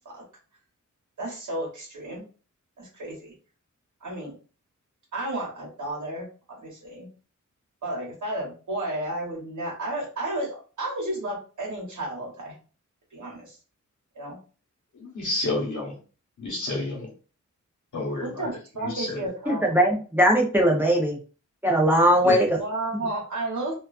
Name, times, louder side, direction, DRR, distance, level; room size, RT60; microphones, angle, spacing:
voice 1, 1.2-2.2 2.8-3.3 4.0-4.3 5.1-7.1 7.8-12.6 13.1-13.6 14.1-14.4 18.2-19.8 22.6-23.8, right 1 dB, 75° right, -3 dB, 1.0 m, -32 dB
voice 2, 14.9-16.0 16.4-17.1 17.9-18.5 18.8-19.3 22.2-22.4, left 2 dB, 75° left, -1 dB, 1.0 m, -30 dB
voice 3, 19.5-21.2 21.6-22.6, equal, 5° right, -1 dB, 0.6 m, -20 dB
2.3 x 2.2 x 2.4 m, 0.36 s
wide cardioid pair, 120°, 30 cm